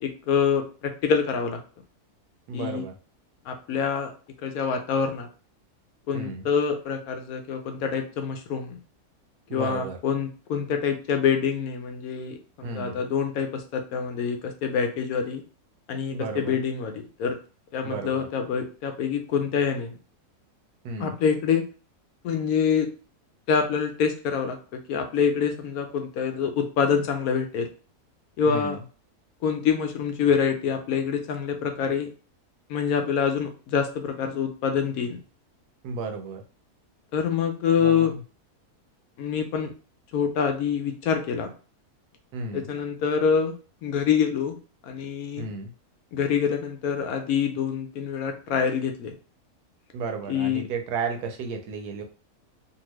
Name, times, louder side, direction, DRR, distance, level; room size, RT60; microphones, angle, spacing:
voice 1, 0.0-1.6 2.5-2.8 3.5-4.1 4.4-5.3 6.1-8.8 9.5-15.4 15.9-17.4 17.7-19.9 21.0-21.7 22.2-22.9 23.5-27.7 28.4-28.8 29.4-32.1 32.7-35.2 37.1-38.1 39.2-39.7 40.1-41.5 42.5-44.6 44.8-45.5 46.1-49.1 50.3-50.6, left 6 dB, 70° left, 5 dB, 1.0 m, -26 dB
voice 2, 2.5-2.9 6.1-6.5 9.5-10.0 12.6-13.0 16.1-16.6 17.8-18.3 20.8-21.2 28.5-28.8 35.8-36.4 37.8-38.2 42.3-42.7 45.4-45.7 49.9-52.0, right 4 dB, 75° right, 4 dB, 1.1 m, -33 dB
2.8 x 2.5 x 3.0 m, 0.36 s
omnidirectional pair, 1.7 m